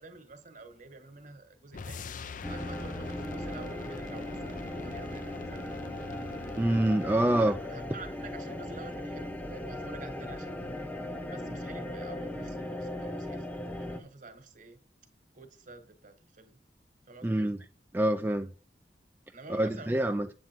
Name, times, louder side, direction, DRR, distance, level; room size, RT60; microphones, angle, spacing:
voice 1, 0.0-2.1 2.5-5.6 7.2-10.7 11.3-14.8 15.3-16.6 17.1-17.5 19.3-20.1, right 3 dB, 45° right, 1.5 m, -48 dB
sound 1, 1.7-7.3, left 4 dB, 45° left, 0.5 m, -44 dB
sound 2, 2.4-14.0, left 1 dB, 10° left, 1.0 m, -38 dB
voice 2, 6.6-7.6 17.2-17.6 17.9-18.5 19.5-20.3, right 1 dB, 10° right, 0.3 m, -26 dB
8.6 x 7.4 x 4.4 m
head